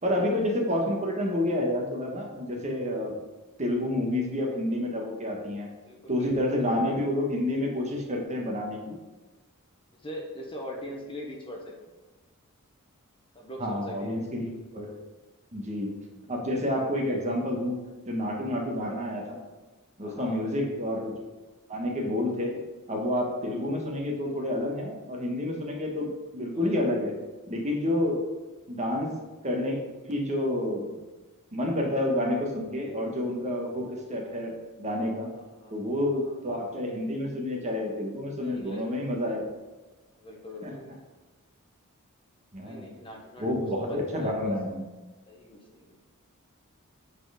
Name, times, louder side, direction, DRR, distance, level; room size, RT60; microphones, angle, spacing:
voice 1, 0.0-3.2 3.6-5.7 6.1-9.0 13.6-15.0 15.5-16.0 16.3-17.8 18.1-19.4 20.0-21.3 21.7-22.5 22.9-27.1 27.5-28.3 28.7-29.1 29.4-29.8 30.0-30.9 31.5-35.3 35.7-39.4 40.6-40.7 42.5-42.9 43.4-44.9, left 1 dB, 30° right, 0 dB, 1.3 m, -29 dB
voice 2, 5.8-6.9 9.9-11.9 13.3-14.2 20.0-20.5 26.5-27.0 35.4-35.7 36.1-36.3 38.4-38.9 40.1-40.9 42.6-44.5 45.3-46.0, left 1 dB, 25° left, 0 dB, 1.1 m, -42 dB
7.8 x 4.1 x 5.0 m, 1.2 s
head